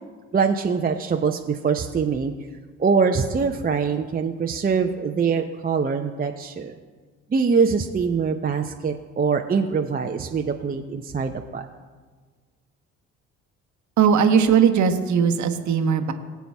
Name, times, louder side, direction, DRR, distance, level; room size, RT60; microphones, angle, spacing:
voice 1, 0.3-2.3 2.8-6.8 7.3-11.6, right 5 dB, 25° right, 3 dB, 0.7 m, -23 dB
voice 2, 14.0-16.1, right 7 dB, 55° right, 6 dB, 1.1 m, -19 dB
19.0 x 8.2 x 2.3 m, 1.5 s
hypercardioid pair, 55°, 35 cm